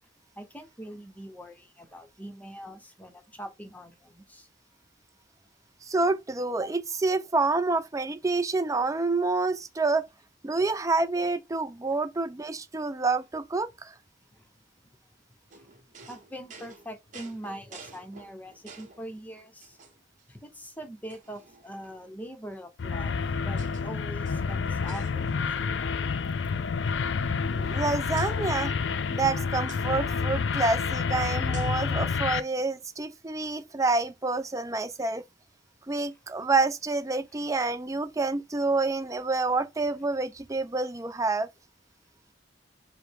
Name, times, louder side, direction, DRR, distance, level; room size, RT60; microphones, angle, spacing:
voice 1, 0.4-4.5 14.3-14.5 15.5-15.7 16.0-19.8 20.3-23.1 23.4-25.8, right 1 dB, 10° left, 0.9 m, -43 dB
voice 2, 5.8-10.1 10.4-13.9 27.5-28.7 29.1-35.2 35.9-41.5, right 3 dB, 20° right, 0.4 m, -28 dB
sound 1, 15.5-19.1 19.6-20.2 20.6-20.7 21.1-22.1 22.9-23.9 24.1-25.7 26.0-26.2 26.5-27.8 28.2-28.4 29.7-29.9 31.5-31.9, right 5 dB, 45° right, 0.9 m, -51 dB
sound 2, 22.8-32.4, left 5 dB, 80° left, 0.4 m, -29 dB
5.1 x 2.1 x 4.6 m
head